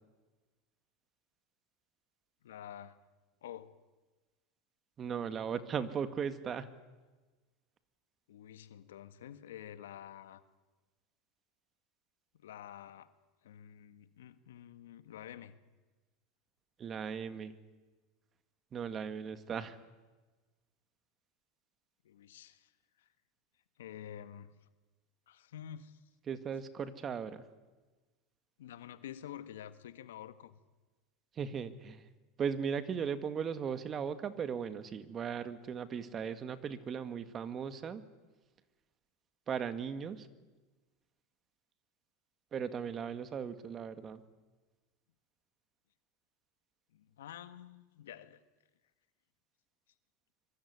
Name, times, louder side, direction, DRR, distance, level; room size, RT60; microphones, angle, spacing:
voice 1, 2.4-3.0 3.4-3.8 8.3-10.4 12.3-13.1 13.4-15.6 22.0-22.7 23.0-23.1 23.8-24.7 25.3-26.0 28.6-30.6 46.9-48.4, left 10 dB, 85° left, 12 dB, 1.5 m, -49 dB
voice 2, 5.0-6.7 16.8-17.5 18.7-19.8 26.3-27.5 31.4-32.1 32.4-38.0 39.5-40.3 42.5-44.2, right 7 dB, 30° right, 11 dB, 2.0 m, -37 dB
24.5 x 24.0 x 9.8 m, 1.2 s
supercardioid pair, 115°, 0 cm